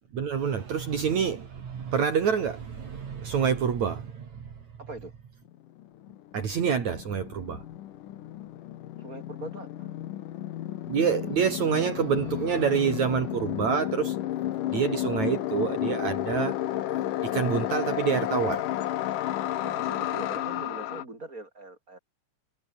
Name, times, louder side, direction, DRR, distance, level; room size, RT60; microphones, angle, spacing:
voice 1, 0.1-4.5 6.3-7.6 10.9-14.2 14.7-16.6 17.2-18.7, right 7 dB, 60° right, 3.9 m, -27 dB
voice 2, 4.8-5.1 9.0-9.9 19.6-22.0, right 2 dB, 25° right, 7.7 m, -42 dB
sound 1, 5.5-5.6 5.8-21.1, left 13 dB, 75° left, 2.7 m, -32 dB
omnidirectional pair, 3.8 m